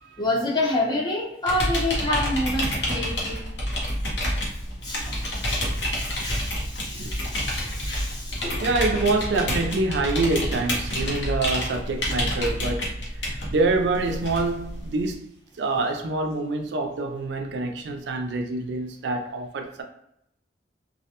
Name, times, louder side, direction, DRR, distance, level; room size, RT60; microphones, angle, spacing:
voice 1, 0.2-3.5 4.8-8.7, left 1 dB, 25° left, 0.7 m, -28 dB
sound 1, 1.5-15.1, equal, 70° left, 0.9 m, -28 dB
voice 2, 8.6-15.3 15.6-19.8, right 3 dB, 75° right, 0.4 m, -26 dB
2.3 x 2.1 x 2.8 m
head